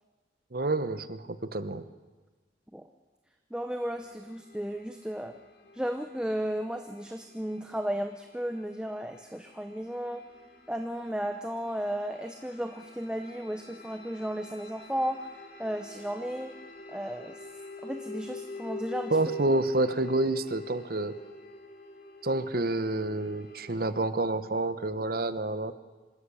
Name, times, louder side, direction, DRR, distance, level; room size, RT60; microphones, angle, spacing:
voice 1, 0.5-1.8 19.1-21.1 22.2-25.7, right 2 dB, 50° right, 13 dB, 1.0 m, -28 dB
voice 2, 3.5-5.3 5.7-10.2 10.7-15.3 15.6-16.6 16.9-17.4 17.8-19.2, equal, 5° right, 6 dB, 0.7 m, -34 dB
sound 1, 3.8-23.8, left 3 dB, 50° left, 2.8 m, -46 dB
26.0 x 13.0 x 8.5 m, 1.3 s
head